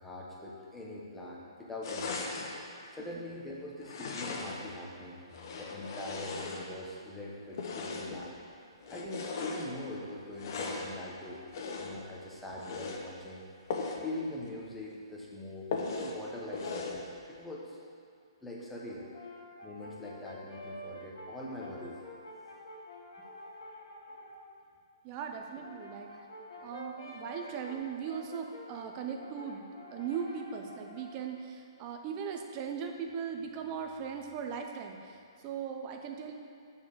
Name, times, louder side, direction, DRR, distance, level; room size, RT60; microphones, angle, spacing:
voice 1, 0.0-2.4 2.9-5.2 5.6-8.4 8.9-11.4 11.8-13.4 14.0-15.7 16.0-17.8 18.4-19.1 19.6-22.0 25.3-25.5 26.1-26.7 27.4-27.6, left 1 dB, 5° left, -4 dB, 1.2 m, -43 dB
sound 1, 1.8-2.6 3.8-4.7 5.3-7.0 7.5-8.2 8.8-9.7 10.3-10.9 11.5-12.1 12.5-13.0 13.7-14.1 14.4-14.5 14.9-15.0 15.7-16.2 16.5-17.0, left 4 dB, 50° left, 1.0 m, -38 dB
Brass instrument, 18.8-24.4 25.4-31.2, left 1 dB, 70° left, 1.8 m, -49 dB
voice 2, 25.0-26.1 26.6-29.6 29.9-36.3, right 7 dB, 30° right, 3 dB, 0.8 m, -39 dB
6.9 x 4.6 x 6.4 m, 2.3 s
hypercardioid pair, 135°, 3 cm